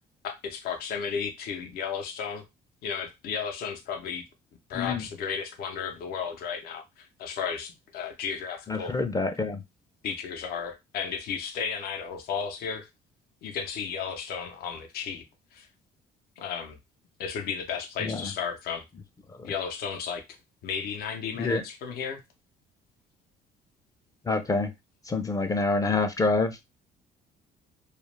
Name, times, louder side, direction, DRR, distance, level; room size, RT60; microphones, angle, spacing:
voice 1, 0.2-2.4 2.8-4.2 4.7-8.9 10.0-12.9 13.4-15.2 15.5-15.7 16.4-16.8 17.2-18.8 19.4-20.2 20.6-22.2, left 6 dB, 65° left, 0.6 m, -34 dB
voice 2, 8.7-9.6 18.0-18.2 19.4-19.5 21.4-21.6 24.3-24.7 25.1-26.6, left 3 dB, 20° left, 0.4 m, -26 dB
2.3 x 2.0 x 3.1 m
cardioid pair, 110°, 17 cm